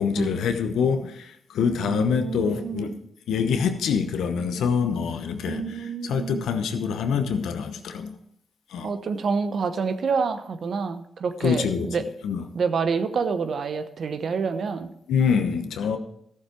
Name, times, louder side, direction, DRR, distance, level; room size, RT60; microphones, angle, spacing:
voice 1, 0.0-2.9 3.3-8.2 8.7-8.9 11.4-12.0 12.2-12.4 15.1-16.0, left 6 dB, 80° left, 8 dB, 0.9 m, -25 dB
voice 2, 1.7-3.0 5.5-6.4 8.8-12.0 12.5-14.9, right 5 dB, 65° right, 9 dB, 1.0 m, -28 dB
14.0 x 7.2 x 4.5 m, 0.72 s
supercardioid pair, 45°, 0 cm